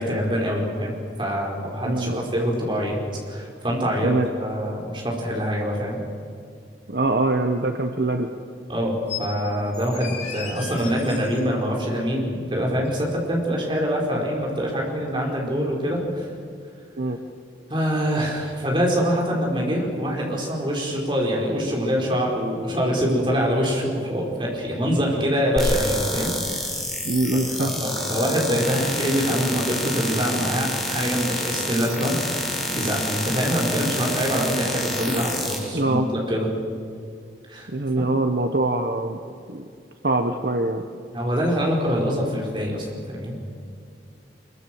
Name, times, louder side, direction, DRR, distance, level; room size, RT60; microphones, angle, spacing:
voice 1, 0.0-3.0 3.3-6.0 8.7-16.2 17.7-26.7 27.3-36.6 37.5-37.7 38.0-38.1 41.1-43.4, equal, 25° right, -1 dB, 5.1 m, -25 dB
voice 2, 1.8-2.2 4.0-4.3 6.9-8.3 17.0-17.2 27.0-27.9 35.7-36.1 37.7-39.2 39.5-39.7 40.0-40.8, right 2 dB, 60° right, 6 dB, 1.1 m, -23 dB
sound 1, 9.1-9.3 9.7-11.4 12.8-12.9, left 7 dB, 40° left, 4.4 m, -35 dB
sound 2, 25.6-35.6, left 1 dB, 5° left, 6.4 m, -28 dB
25.0 x 22.5 x 7.8 m, 2.3 s
head